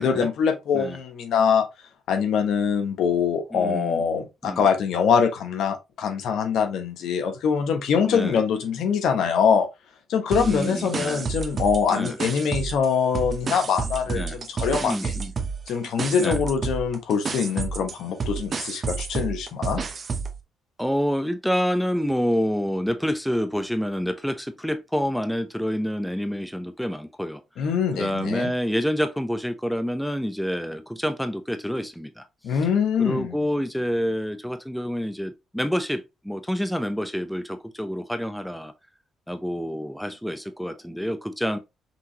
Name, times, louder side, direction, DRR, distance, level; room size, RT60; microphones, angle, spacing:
voice 1, 0.0-1.7 2.1-9.7 10.1-15.1 15.7-19.8 27.6-28.5 32.4-33.4, left 6 dB, 75° left, 1.0 m, -23 dB
voice 2, 3.5-4.1 4.4-4.7 8.0-8.4 10.3-11.3 11.9-12.2 14.1-14.4 14.8-15.3 16.2-16.4 20.8-27.4 27.9-32.6 33.0-38.7 39.3-41.6, equal, ahead, 0.6 m, -28 dB
sound 1, 10.3-12.9 13.1-20.4, right 5 dB, 40° right, 0.8 m, -30 dB
5.8 x 2.9 x 2.8 m
cardioid pair, 90°, 0 cm